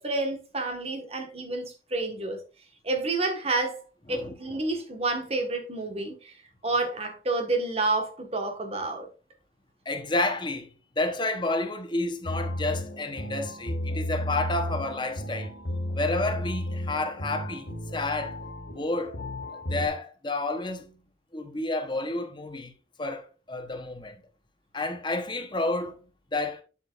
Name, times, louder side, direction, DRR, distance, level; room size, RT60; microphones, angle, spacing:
voice 1, 0.0-2.4 2.8-3.8 4.1-6.3 6.6-9.1, right 2 dB, 35° right, 1.4 m, -29 dB
voice 2, 4.1-4.6 9.8-10.7 11.0-15.5 15.9-18.4 18.7-19.2 19.7-21.0 21.3-22.7 23.0-24.2 24.7-26.6, left 2 dB, 25° left, 1.0 m, -30 dB
sound 1, 12.2-19.9, left 1 dB, 80° left, 1.8 m, -33 dB
7.8 x 7.4 x 2.5 m
head